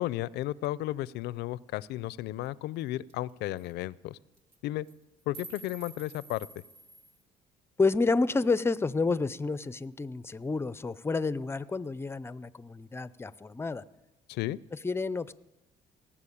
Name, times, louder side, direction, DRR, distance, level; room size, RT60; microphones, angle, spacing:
voice 1, 0.0-4.2 4.6-4.9 5.3-6.5 14.3-14.6, left 15 dB, 80° left, 21 dB, 0.4 m, -33 dB
sound 1, 2.4-2.5 2.8-2.9 3.1-3.3 3.6-3.7 4.3-4.6 4.9-7.2, right 3 dB, 75° right, 2.4 m, -49 dB
voice 2, 7.8-13.8 14.7-15.3, left 3 dB, 15° left, 17 dB, 0.4 m, -29 dB
18.0 x 7.3 x 8.5 m, 1.0 s
cardioid pair, 110°, 17 cm